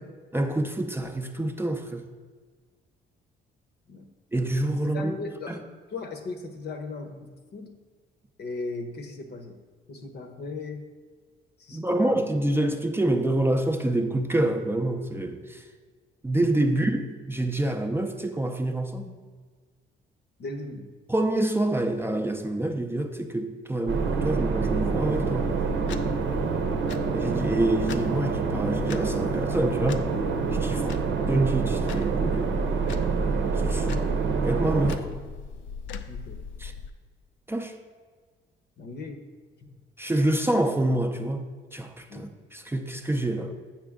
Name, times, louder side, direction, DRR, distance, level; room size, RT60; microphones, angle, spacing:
voice 1, 0.3-2.0 4.3-5.1 5.5-5.6 11.7-15.6 16.2-19.2 21.1-25.5 27.1-30.1 30.6-30.8 31.3-32.5 33.5-33.9 34.4-35.2 36.6-36.7 37.5-37.7 40.0-41.4 41.7-43.5, right 1 dB, 10° right, 4 dB, 0.5 m, -27 dB
voice 2, 4.8-7.8 8.4-9.6 9.9-10.9 11.6-12.3 20.4-20.9 30.7-31.0 36.1-36.4 38.8-39.2 42.1-42.3, left 3 dB, 55° left, 6 dB, 0.8 m, -38 dB
sound 1, 23.9-35.0, right 4 dB, 75° right, 0.8 m, -26 dB
sound 2, 25.1-36.9, left 5 dB, 70° left, 0.5 m, -39 dB
7.6 x 5.9 x 3.6 m, 1.5 s
cardioid pair, 90°, 20 cm